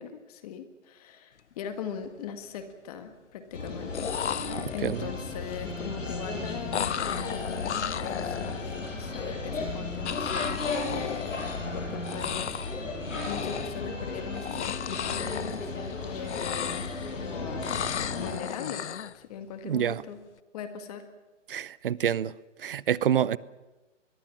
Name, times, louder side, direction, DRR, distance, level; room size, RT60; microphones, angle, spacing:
voice 1, 0.0-4.2 4.7-11.3 11.7-16.9 17.1-17.8 18.2-18.9 19.1-20.2 20.5-21.0, left 7 dB, 30° left, 1.8 m, -40 dB
sound 1, 1.5-1.7 2.0-2.6 3.7-3.8 3.9-5.1 6.7-8.9 10.0-11.8 12.0-12.8 13.1-13.9 14.3-16.0 16.2-17.2 17.6-19.2, left 9 dB, 65° left, 0.9 m, -34 dB
sound 2, 3.5-18.3, left 3 dB, 85° left, 7.9 m, -35 dB
sound 3, 3.5-13.5, left 8 dB, 50° left, 4.7 m, -47 dB
voice 2, 19.6-20.0 21.5-22.3 22.6-23.4, right 9 dB, 45° right, 0.7 m, -27 dB
24.5 x 21.5 x 7.4 m
hypercardioid pair, 155°, 37 cm